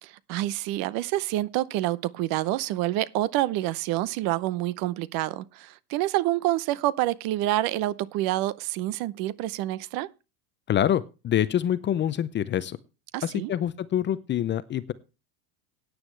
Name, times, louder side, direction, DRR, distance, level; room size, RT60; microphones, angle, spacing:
voice 1, 0.0-10.1 13.1-13.5, right 15 dB, 50° right, 0.8 m, -27 dB
voice 2, 10.7-12.8 13.2-14.9, left 10 dB, 25° left, 0.6 m, -26 dB
16.5 x 9.6 x 3.2 m
supercardioid pair, 130°, 46 cm